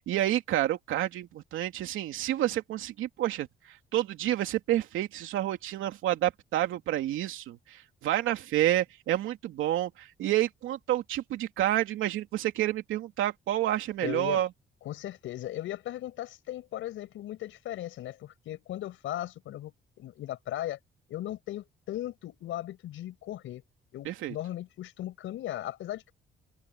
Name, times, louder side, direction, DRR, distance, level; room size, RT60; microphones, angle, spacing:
voice 1, 0.0-14.5 24.0-24.4, right 13 dB, 85° right, 2.9 m, -29 dB
voice 2, 14.0-14.4 14.8-20.8 21.1-23.6 23.9-26.1, left 13 dB, 85° left, 5.6 m, -37 dB
open air
cardioid pair, 90°, 20 cm